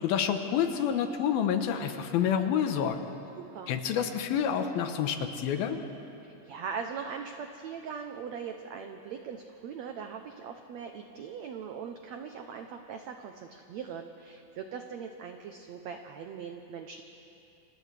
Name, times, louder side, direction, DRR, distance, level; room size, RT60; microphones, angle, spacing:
voice 1, 0.0-3.0 3.7-5.8, left 8 dB, 85° left, 7 dB, 2.9 m, -28 dB
voice 2, 3.4-3.7 6.3-17.0, right 6 dB, 85° right, 5 dB, 1.5 m, -40 dB
29.5 x 26.5 x 3.4 m, 2.7 s
omnidirectional pair, 4.2 m